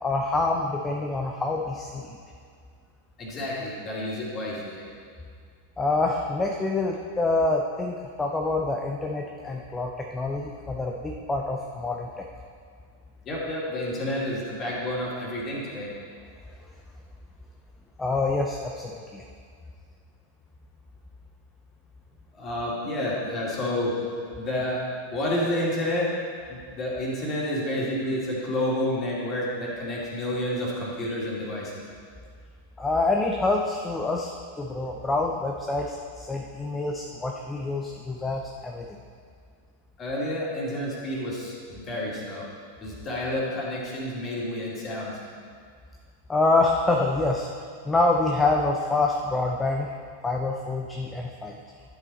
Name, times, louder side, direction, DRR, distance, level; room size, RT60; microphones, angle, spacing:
voice 1, 0.0-2.2 5.8-12.3 18.0-19.2 32.8-34.3 34.6-39.0 46.3-47.5 47.8-49.9 50.2-51.6, left 2 dB, 10° left, 1 dB, 0.7 m, -26 dB
voice 2, 3.2-4.9 13.2-15.9 22.3-24.1 24.3-24.8 25.1-26.1 26.5-31.7 40.0-42.5 42.8-45.1, left 1 dB, 30° left, -4 dB, 2.6 m, -29 dB
11.5 x 6.8 x 4.2 m, 2.1 s
figure-of-eight pair, 90°, 0 cm